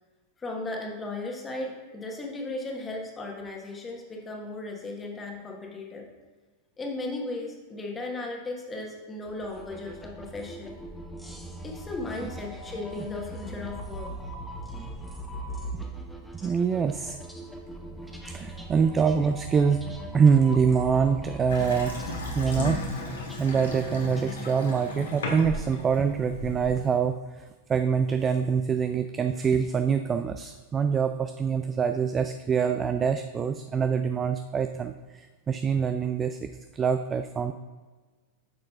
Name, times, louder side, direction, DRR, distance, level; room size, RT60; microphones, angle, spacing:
voice 1, 0.4-6.1 6.8-10.8 11.6-14.1, left 2 dB, 15° left, 0 dB, 1.4 m, -36 dB
sound 1, 9.2-24.3, right 1 dB, ahead, 0.9 m, -39 dB
voice 2, 16.4-17.2 18.3-19.8 20.1-22.0 22.4-22.8 23.4-27.4 27.7-37.5, right 6 dB, 20° right, 8 dB, 0.3 m, -25 dB
Water tap faucet / Sink (filling or washing) / Bathtub (filling or washing), 21.5-26.9, left 3 dB, 65° left, 1.4 m, -35 dB
9.6 x 6.5 x 2.4 m, 1.3 s
figure-of-eight pair, 90°, 0 cm